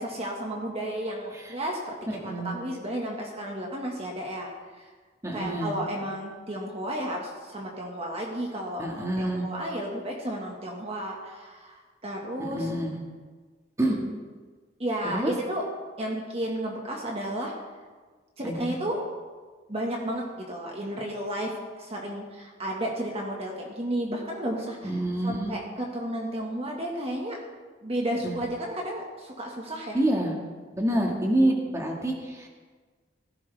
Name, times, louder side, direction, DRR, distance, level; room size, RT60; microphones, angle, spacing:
voice 1, 0.0-4.5 4.8-4.9 5.3-12.7 14.8-15.6 16.0-17.5 18.4-19.0 19.7-27.4 27.8-30.0, right 1 dB, 35° right, -1 dB, 1.8 m, -33 dB
voice 2, 2.1-2.5 5.2-5.8 8.8-9.4 12.4-12.9 13.8-14.0 15.1-15.3 18.4-18.8 24.8-25.5 28.2-28.3 29.9-30.3 30.7-32.5, right 1 dB, 15° right, 0 dB, 2.0 m, -27 dB
17.5 x 15.5 x 3.6 m, 1.4 s
head